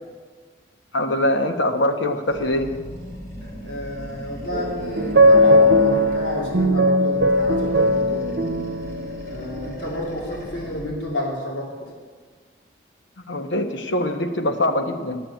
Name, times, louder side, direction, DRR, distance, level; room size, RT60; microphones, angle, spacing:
voice 1, 0.9-2.7 13.3-15.2, left 1 dB, 85° left, 5 dB, 1.1 m, -23 dB
Animal, 2.3-6.8 7.1-11.0, equal, 50° left, 2.5 m, -38 dB
voice 2, 3.4-8.4 9.3-11.9, left 1 dB, 70° left, -4 dB, 2.9 m, -31 dB
sound 1, 4.5-9.4, equal, 70° right, 0.8 m, -18 dB
10.0 x 7.7 x 8.1 m, 1.5 s
head